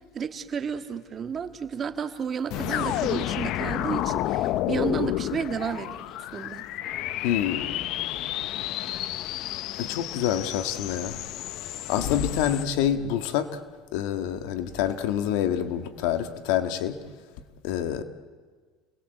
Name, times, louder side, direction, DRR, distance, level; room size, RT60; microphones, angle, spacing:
voice 1, 0.1-6.0 6.3-6.6, right 7 dB, 35° right, 8 dB, 1.7 m, -32 dB
sound 1, 2.5-12.6, left 13 dB, 60° left, 0.8 m, -30 dB
voice 2, 7.2-7.7 9.8-11.2 11.9-13.5 13.9-17.0 17.6-18.0, left 10 dB, 75° left, 9 dB, 1.7 m, -27 dB
29.5 x 19.5 x 8.0 m, 1.5 s
supercardioid pair, 115°, 0 cm